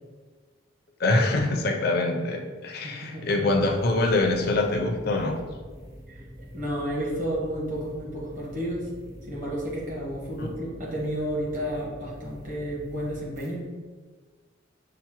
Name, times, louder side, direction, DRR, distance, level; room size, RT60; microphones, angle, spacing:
voice 1, 1.0-5.4 10.4-10.5, left 2 dB, 50° left, 3 dB, 0.4 m, -24 dB
voice 2, 2.7-3.3 6.1-8.9 9.3-13.7, equal, 40° right, -5 dB, 1.0 m, -32 dB
sound 1, 3.5-13.5, equal, 15° right, 0.3 m, -45 dB
5.6 x 2.0 x 2.9 m, 1.4 s
head